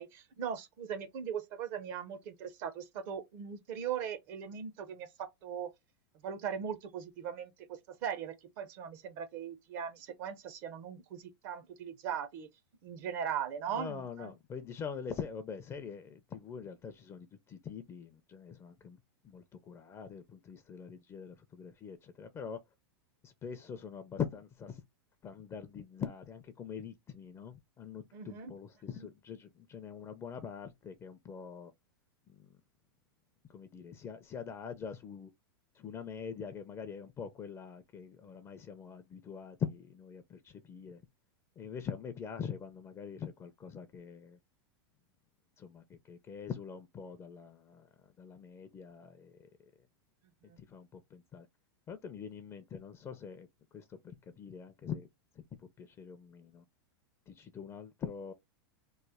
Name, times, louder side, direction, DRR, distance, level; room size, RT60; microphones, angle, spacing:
voice 1, 0.0-5.7 6.2-12.5 12.8-14.3 28.1-28.5 29.0-29.1 50.5-50.6, right 8 dB, 55° right, 0.6 m, -39 dB
voice 2, 13.7-19.0 19.2-22.6 23.2-24.8 25.2-31.7 32.3-32.5 33.5-35.3 35.8-41.0 41.6-44.4 45.6-47.9 48.2-49.5 50.6-51.5 51.9-53.5 53.7-55.1 55.8-56.6 57.3-58.3, left 7 dB, 20° left, 0.4 m, -43 dB
3.1 x 2.1 x 3.4 m
hypercardioid pair, 125°, 13 cm